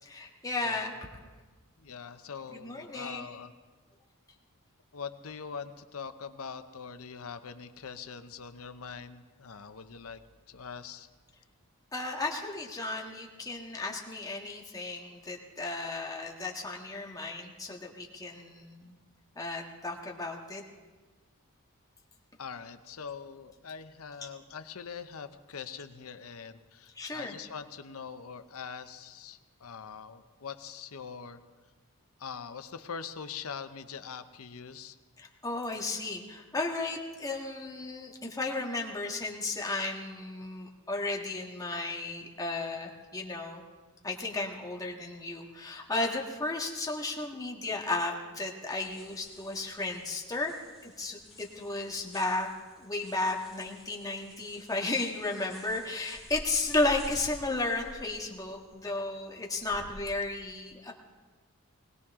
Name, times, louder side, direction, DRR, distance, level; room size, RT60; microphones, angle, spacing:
voice 1, 0.1-0.9 2.5-3.3 11.9-19.0 19.3-20.6 24.2-24.3 26.9-27.4 35.2-43.6 44.0-50.5 50.8-52.5 52.8-60.9, left 2 dB, 15° left, 0 dB, 1.6 m, -34 dB
voice 2, 1.8-3.5 4.9-10.2 10.5-11.1 22.4-31.4 32.2-35.0, left 6 dB, 70° left, 9 dB, 0.7 m, -43 dB
sound 1, 48.8-60.1, left 1 dB, ahead, 5.1 m, -51 dB
20.5 x 18.5 x 3.7 m, 1.3 s
head